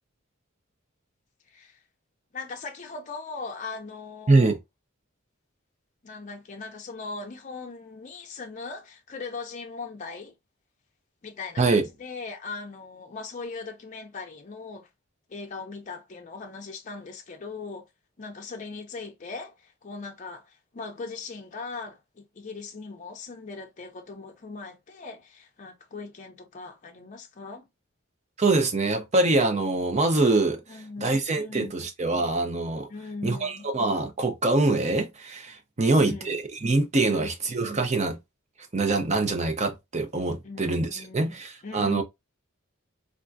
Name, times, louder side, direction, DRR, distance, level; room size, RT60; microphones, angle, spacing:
voice 1, 1.5-1.8 2.3-4.5 6.0-10.3 11.2-14.9 15.3-17.9 18.2-27.6 30.7-31.8 32.9-33.7 35.8-36.4 37.1-37.3 40.4-41.3 41.6-42.0, left 4 dB, 35° left, 0.5 m, -39 dB
voice 2, 4.3-4.6 11.6-11.8 28.4-32.9 33.2-38.2 38.7-42.0, right 2 dB, 35° right, 0.6 m, -24 dB
3.5 x 2.5 x 2.5 m
head